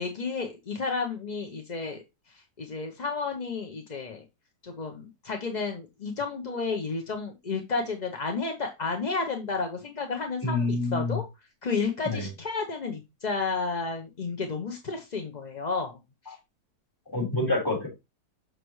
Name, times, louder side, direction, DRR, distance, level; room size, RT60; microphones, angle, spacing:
voice 1, 0.0-2.0 2.6-4.2 4.6-11.2 11.6-16.0 16.3-16.4, left 4 dB, 40° left, 3 dB, 0.7 m, -31 dB
voice 2, 10.4-11.2 12.0-12.3 17.1-17.9, left 2 dB, 10° left, -4 dB, 4.2 m, -27 dB
6.6 x 6.2 x 3.2 m, 0.23 s
omnidirectional pair, 1.9 m